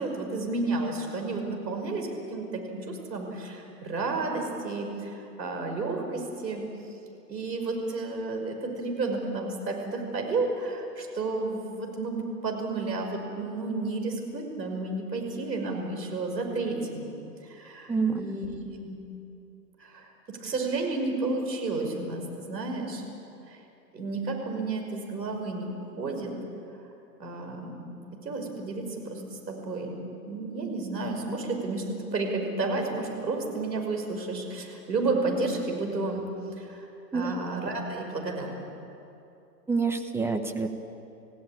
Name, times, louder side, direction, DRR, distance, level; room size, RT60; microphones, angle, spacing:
voice 1, 0.0-6.6 7.3-17.1 17.5-18.5 18.9-19.2 19.8-23.0 23.5-23.6 23.9-26.3 27.2-30.0 30.3-36.2 36.6-36.9 37.1-38.7, right 3 dB, 85° right, 3 dB, 5.8 m, -32 dB
voice 2, 17.9-18.2 37.1-37.3 39.7-40.7, right 4 dB, 5° right, 4 dB, 0.8 m, -27 dB
28.5 x 16.5 x 8.8 m, 2.8 s
hypercardioid pair, 130°, 50 cm